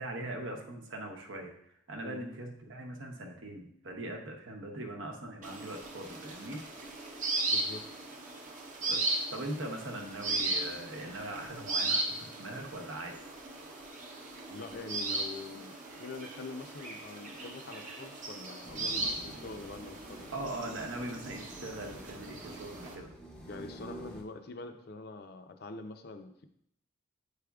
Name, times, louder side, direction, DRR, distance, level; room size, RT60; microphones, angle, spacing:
voice 1, 0.0-1.5 1.9-6.6 8.9-9.0 9.3-13.2 20.3-23.1, right 1 dB, 65° right, 2 dB, 0.9 m, -41 dB
sound 1, 5.4-22.9, right 2 dB, 35° right, 0.7 m, -37 dB
voice 2, 7.5-7.8 14.5-20.3 23.5-26.5, left 3 dB, 50° left, 6 dB, 0.5 m, -45 dB
sound 2, 18.6-24.2, right 1 dB, 5° left, 0.6 m, -49 dB
8.3 x 4.9 x 2.3 m, 0.72 s
head